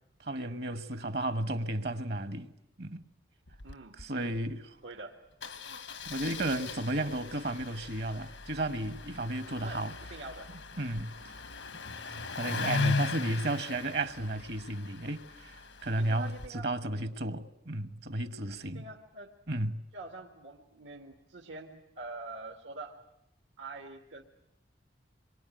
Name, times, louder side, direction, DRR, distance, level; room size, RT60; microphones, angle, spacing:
voice 1, 0.2-2.5 2.8-3.0 4.0-4.6 6.1-9.9 10.8-11.1 11.9-18.8 19.5-19.8, right 1 dB, 60° right, 1.3 m, -33 dB
Engine starting, 3.5-3.7 4.0-4.1 4.3-4.5 5.4-16.5, left 4 dB, 85° left, 1.6 m, -38 dB
voice 2, 3.6-4.4 4.8-5.2 9.6-10.5 11.2-11.3 16.0-16.7 18.7-19.3 19.9-23.0 23.6-24.2, right 3 dB, 85° right, 2.1 m, -45 dB
27.0 x 23.0 x 9.3 m
head